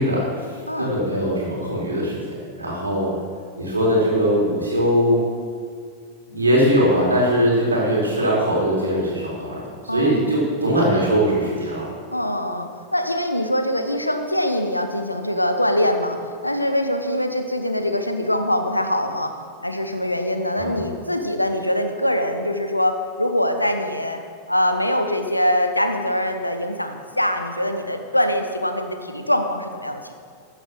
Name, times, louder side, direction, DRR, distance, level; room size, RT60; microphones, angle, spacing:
voice 1, 0.0-3.2 3.6-5.2 6.3-9.7 9.9-11.9 20.6-20.8, equal, 80° right, -4 dB, 4.1 m, -21 dB
voice 2, 0.7-1.0 9.9-10.5 12.1-19.4 19.6-24.2 24.5-30.1, left 1 dB, 85° left, 6 dB, 1.1 m, -23 dB
14.0 x 8.8 x 6.1 m, 2.2 s
figure-of-eight pair, 90°, 0 cm